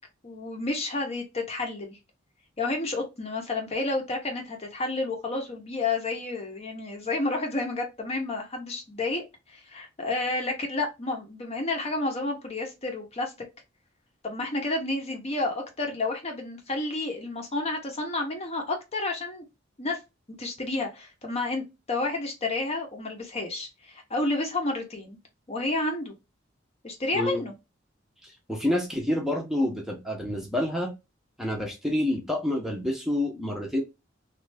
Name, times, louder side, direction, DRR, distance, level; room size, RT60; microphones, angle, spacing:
voice 1, 0.2-2.0 2.6-9.2 9.5-13.3 14.2-19.4 19.8-20.0 20.4-25.2 25.5-26.1 26.8-27.5, left 2 dB, 30° left, 0.7 m, -30 dB
voice 2, 28.2-30.9 31.4-33.8, left 1 dB, ahead, 0.7 m, -28 dB
3.1 x 2.4 x 3.2 m
head